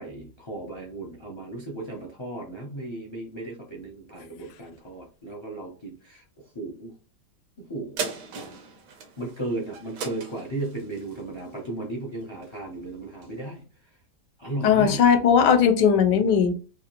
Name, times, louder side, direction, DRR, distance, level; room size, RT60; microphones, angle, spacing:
voice 1, 0.0-6.9 7.7-8.1 9.2-13.6 14.4-15.0, right 2 dB, 45° left, -1 dB, 0.3 m, -35 dB
sound 1, 8.0-12.7 13.2-13.3, right 5 dB, 90° right, 1.3 m, -38 dB
voice 2, 14.6-16.6, left 7 dB, 85° left, 7 dB, 1.3 m, -18 dB
3.5 x 2.5 x 2.9 m, 0.38 s
omnidirectional pair, 1.8 m